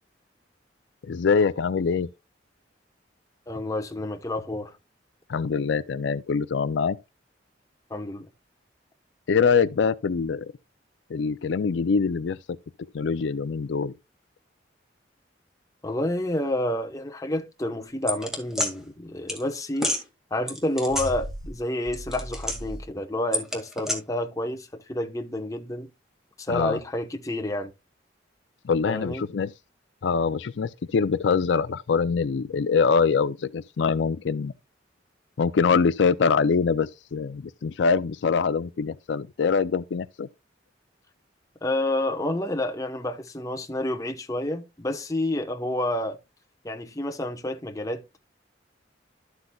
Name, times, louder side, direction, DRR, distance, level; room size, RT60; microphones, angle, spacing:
voice 1, 1.0-2.1 5.3-7.0 9.3-10.5 11.1-12.6 12.9-13.9 26.5-26.8 28.6-29.5 30.0-34.5 35.4-40.3, left 5 dB, 70° left, 0.4 m, -24 dB
voice 2, 3.5-4.8 7.9-8.3 15.8-19.9 20.3-25.9 26.4-27.7 28.9-29.2 41.6-46.2 46.6-48.0, left 1 dB, 20° left, 1.0 m, -29 dB
sound 1, 18.1-18.7 19.3-19.4 19.8-20.0 20.5-21.6 21.9-22.8 23.3-24.0, equal, 5° right, 2.0 m, -29 dB
12.5 x 7.9 x 2.3 m
head